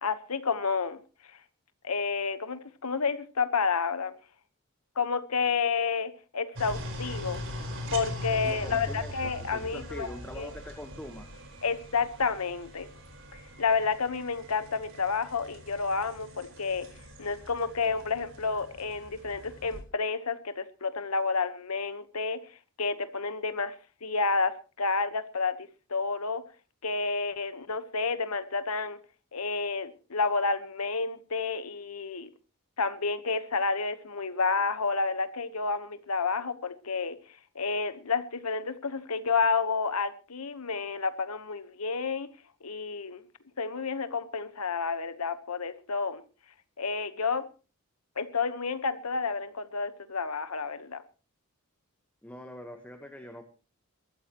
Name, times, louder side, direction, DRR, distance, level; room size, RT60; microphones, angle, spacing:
voice 1, 0.0-1.0 1.8-4.1 5.0-7.4 7.9-10.1 10.3-10.5 11.6-12.9 13.3-16.9 17.2-22.4 22.8-23.7 24.0-26.4 26.8-29.0 29.3-32.3 32.8-37.2 37.5-42.3 42.6-43.2 43.6-46.2 46.8-47.5 48.2-51.0, left 4 dB, 90° left, 1.2 m, -30 dB
sound 1, 6.6-19.8, equal, 60° right, 4.6 m, -41 dB
voice 2, 8.4-11.3 52.2-53.4, left 1 dB, 5° left, 1.3 m, -43 dB
22.5 x 13.5 x 3.1 m
head